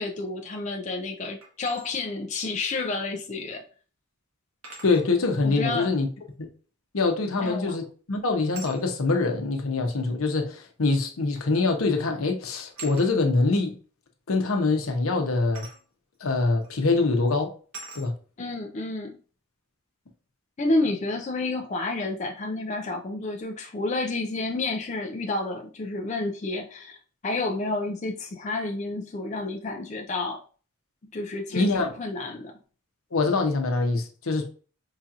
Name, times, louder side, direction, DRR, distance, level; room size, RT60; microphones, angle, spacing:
voice 1, 0.0-3.7 5.4-5.9 7.4-7.8 18.4-19.2 20.6-27.0 27.2-30.4 31.1-32.5, left 2 dB, 35° left, 0.4 m, -30 dB
sound 1, 1.4-1.9 3.4-3.5 4.6-5.1 7.3-7.6 8.5-8.8 10.0-10.1 11.4-11.6 11.9-12.1 12.8-13.1 15.5-15.8 16.6-16.8 17.7-18.1, right 3 dB, 85° right, 1.4 m, -43 dB
voice 2, 4.8-6.1 6.4-6.5 6.9-13.8 14.3-15.7 16.2-17.5 17.9-18.1 31.5-31.9 33.1-34.5, left 3 dB, 80° left, 0.8 m, -24 dB
4.8 x 2.8 x 2.4 m
head